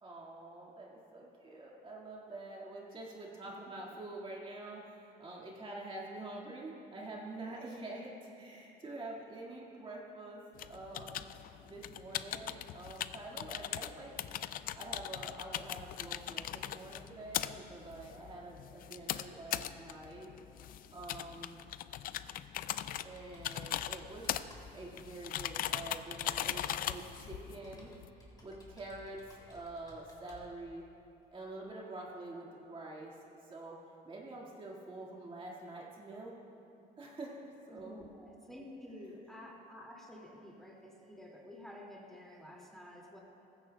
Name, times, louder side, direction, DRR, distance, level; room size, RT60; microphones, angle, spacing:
voice 1, 0.0-11.3 11.7-14.1 14.8-20.3 20.9-21.6 23.0-24.3 24.7-27.9 28.4-30.8 31.3-33.1 33.5-33.8 34.0-36.4 37.0-38.0, right 2 dB, 30° right, -3 dB, 1.9 m, -46 dB
sound 1, 10.6-28.1, left 11 dB, 60° left, 0.4 m, -40 dB
Computer keyboard, 23.2-30.5, left 2 dB, 25° left, 3.4 m, -57 dB
voice 2, 37.7-43.2, left 1 dB, ahead, -2 dB, 2.3 m, -51 dB
18.5 x 15.5 x 2.3 m, 2.8 s
cardioid pair, 110°, 17 cm